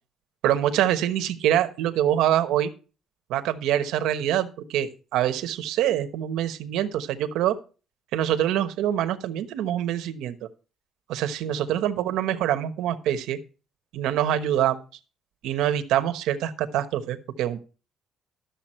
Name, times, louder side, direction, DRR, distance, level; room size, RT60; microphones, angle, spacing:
voice 1, 0.4-2.7 3.3-7.5 8.1-10.3 11.1-13.4 13.9-14.8 15.4-17.7, right 11 dB, 90° right, 8 dB, 1.2 m, -25 dB
13.0 x 7.1 x 4.4 m, 0.35 s
cardioid pair, 160°, 0 cm